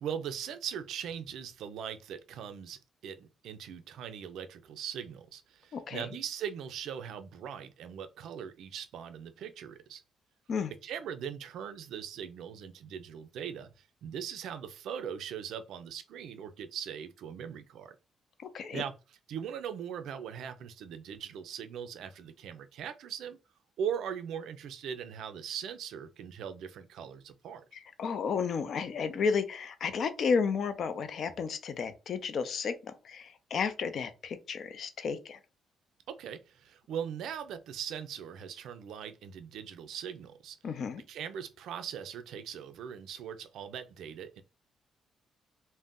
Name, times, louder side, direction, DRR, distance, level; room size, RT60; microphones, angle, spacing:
voice 1, 0.0-10.0 10.8-18.0 18.7-18.9 19.3-23.4 23.8-27.6 36.1-40.6 41.1-44.4, right 8 dB, 80° right, 0.4 m, -40 dB
voice 2, 5.7-6.1 10.5-10.7 18.4-18.8 27.7-35.4 40.6-41.0, left 5 dB, 60° left, 0.4 m, -32 dB
2.5 x 2.1 x 3.5 m
cardioid pair, 90°, 0 cm